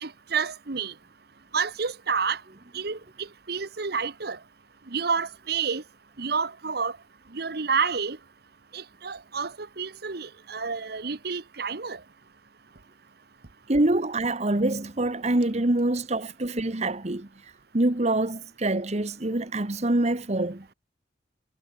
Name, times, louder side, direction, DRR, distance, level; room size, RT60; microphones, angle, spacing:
voice 1, 0.0-0.9 1.5-2.4 2.7-4.4 4.9-5.8 6.2-6.9 7.3-8.2 8.7-12.0, right 5 dB, 60° right, 1.2 m, -29 dB
voice 2, 13.7-17.3 17.7-20.7, right 2 dB, 40° right, 1.4 m, -25 dB
head